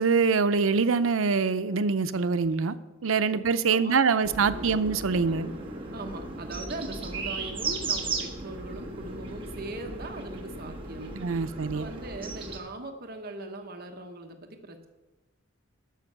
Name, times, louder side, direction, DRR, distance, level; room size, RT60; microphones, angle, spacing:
voice 1, 0.0-2.7 3.0-5.5 11.1-11.9, right 5 dB, 90° right, 11 dB, 0.6 m, -24 dB
voice 2, 3.7-4.8 5.2-5.5 5.9-11.4 11.7-14.9, right 2 dB, 50° right, 5 dB, 1.0 m, -40 dB
sound 1, 4.2-12.6, right 3 dB, 25° right, 1.4 m, -36 dB
12.5 x 5.4 x 6.9 m, 1.1 s
head